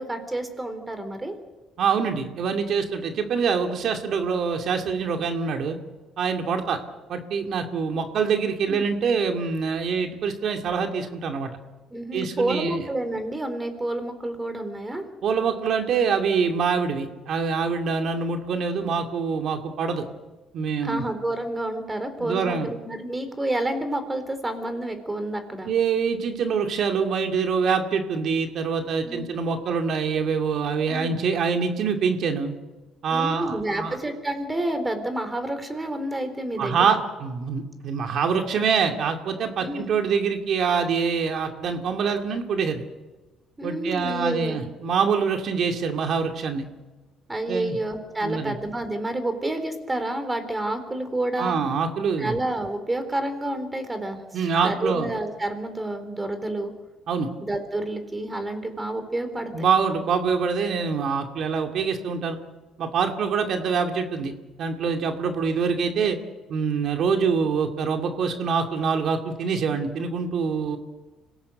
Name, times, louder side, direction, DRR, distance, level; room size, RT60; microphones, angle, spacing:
voice 1, 0.0-1.3 8.7-8.8 11.9-15.0 20.8-25.7 29.0-29.3 30.9-31.1 33.1-37.0 39.6-39.8 43.6-44.6 47.3-51.6 52.2-54.2 54.6-56.7 57.4-59.7, right 1 dB, 15° right, 9 dB, 4.0 m, -29 dB
voice 2, 1.8-5.8 6.2-6.8 7.1-11.5 12.1-12.8 15.2-20.0 20.5-21.0 22.2-22.7 25.6-32.5 33.0-34.0 36.6-42.8 43.6-46.6 47.5-47.8 48.2-48.6 51.4-52.4 54.3-55.1 57.1-57.3 59.5-62.4 62.8-64.3 64.6-66.2 66.5-70.8, right 5 dB, 60° right, 4 dB, 2.4 m, -25 dB
26.0 x 18.0 x 8.1 m, 1.2 s
cardioid pair, 90°, 0 cm